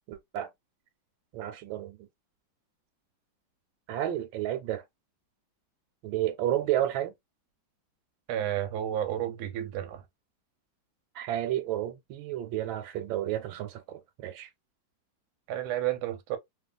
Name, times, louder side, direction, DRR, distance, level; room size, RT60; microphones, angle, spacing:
voice 1, 0.1-0.5 1.3-2.1 3.9-4.8 6.0-7.1 11.1-14.5, right 12 dB, 90° right, 1.4 m, -31 dB
voice 2, 8.3-10.0 15.5-16.4, right 11 dB, 70° right, 1.0 m, -31 dB
3.0 x 2.3 x 2.2 m
omnidirectional pair, 2.1 m